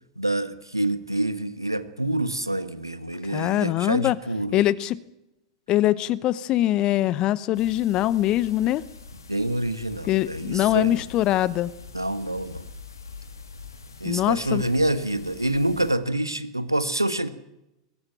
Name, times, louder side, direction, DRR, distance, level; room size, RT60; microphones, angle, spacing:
voice 1, 0.2-4.6 9.3-11.0 11.9-12.7 14.0-17.3, right 1 dB, 90° right, 13 dB, 1.3 m, -27 dB
voice 2, 3.3-4.2 4.5-5.0 5.7-8.8 10.0-11.7 14.0-14.6, left 14 dB, 40° left, 19 dB, 0.9 m, -23 dB
sound 1, 7.5-16.0, left 4 dB, 75° left, 2.8 m, -44 dB
22.0 x 16.0 x 9.1 m, 0.90 s
figure-of-eight pair, 90°, 2 cm